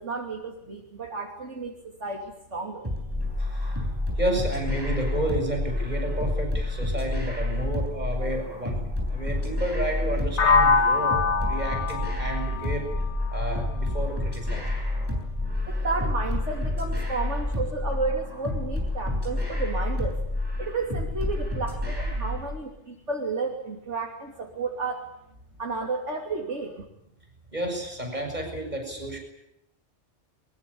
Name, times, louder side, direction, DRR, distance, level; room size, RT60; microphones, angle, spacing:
voice 1, 0.0-2.9 15.7-20.2 20.6-25.1 25.6-26.8, right 3 dB, 85° right, 1 dB, 3.4 m, -32 dB
sound 1, 2.8-22.4, left 1 dB, 20° right, 7.4 m, -29 dB
voice 2, 4.2-8.8 9.1-12.9 13.3-14.7 27.5-29.2, right 1 dB, 40° right, 3 dB, 7.3 m, -31 dB
sound 2, 10.4-14.3, left 4 dB, 75° left, 1.5 m, -24 dB
23.5 x 22.5 x 8.6 m, 0.80 s
omnidirectional pair, 1.2 m